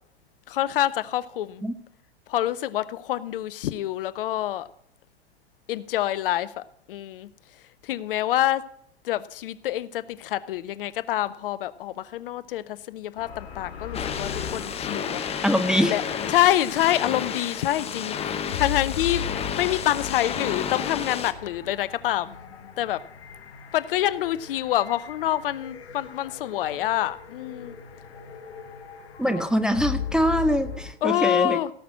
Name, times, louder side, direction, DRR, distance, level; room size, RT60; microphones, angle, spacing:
voice 1, 0.5-1.6 2.3-4.7 5.7-7.3 7.8-8.7 9.0-15.2 15.9-16.0 16.3-22.3 22.8-23.0 23.7-27.7 29.2-29.4 31.0-31.7, left 13 dB, 55° left, 0.7 m, -26 dB
sound 1, 13.2-30.9, left 8 dB, 70° left, 1.4 m, -38 dB
sound 2, 13.9-21.3, left 7 dB, 20° left, 0.9 m, -31 dB
voice 2, 15.4-15.9 29.2-31.6, equal, ahead, 0.6 m, -23 dB
17.5 x 6.0 x 6.3 m
figure-of-eight pair, 100°, 32 cm